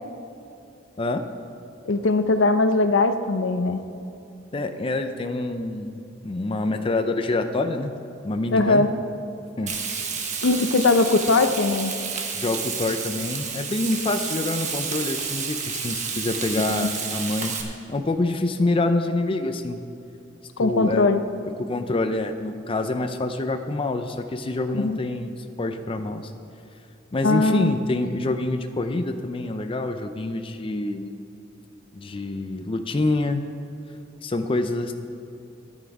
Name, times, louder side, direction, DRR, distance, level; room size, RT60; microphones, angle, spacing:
voice 1, 1.9-3.8 8.5-8.9 10.4-11.9 16.6-16.9 20.6-21.2 24.7-25.0 27.2-27.7, left 3 dB, 75° left, 9 dB, 0.6 m, -20 dB
voice 2, 4.5-7.9 8.2-8.9 9.6-9.7 12.3-19.8 20.6-21.1 21.6-26.3 27.1-31.1 31.9-33.4 34.2-34.9, left 2 dB, 30° left, 7 dB, 0.5 m, -26 dB
Frying (food), 9.7-17.6, right 6 dB, 40° right, 1.1 m, -30 dB
13.5 x 9.2 x 4.8 m, 2.7 s
head